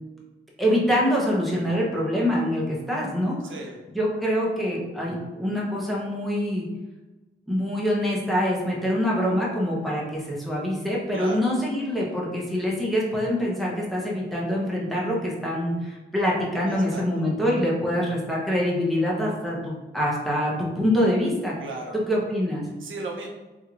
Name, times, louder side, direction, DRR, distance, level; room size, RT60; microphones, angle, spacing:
voice 1, 0.6-3.4 3.9-6.7 7.5-21.5 21.9-22.6, equal, ahead, -5 dB, 0.7 m, -25 dB
voice 2, 3.4-3.8 11.1-11.5 16.6-17.0 21.6-22.0 22.8-23.3, right 2 dB, 85° right, 0 dB, 0.6 m, -35 dB
3.1 x 2.9 x 2.4 m, 1.1 s
wide cardioid pair, 120°, 20 cm